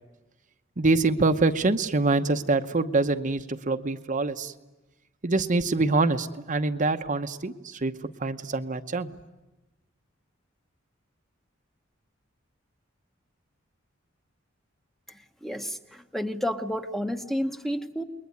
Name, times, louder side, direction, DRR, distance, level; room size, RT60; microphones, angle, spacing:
voice 1, 0.8-4.5 5.2-7.9 8.2-9.1, right 3 dB, 40° right, 7 dB, 0.9 m, -25 dB
voice 2, 15.4-18.0, equal, ahead, 6 dB, 1.0 m, -30 dB
29.0 x 21.5 x 9.5 m, 1.1 s
head